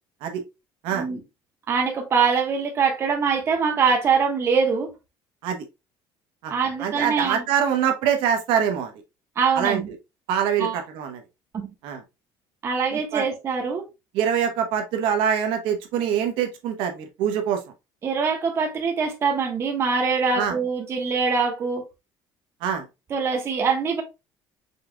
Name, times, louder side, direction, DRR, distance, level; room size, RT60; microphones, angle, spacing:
voice 1, 1.7-4.9 6.5-7.4 9.4-9.9 10.6-10.8 11.5-11.7 12.6-13.9 18.0-21.8 23.1-24.0, right 5 dB, 30° right, 1.2 m, -23 dB
voice 2, 6.8-8.9 9.6-9.8 10.3-11.2 11.8-12.0 12.9-13.2 14.1-17.6 20.4-20.5 22.6-22.8, right 8 dB, 75° right, 0.9 m, -24 dB
5.4 x 3.7 x 2.2 m
cardioid pair, 160°, 9 cm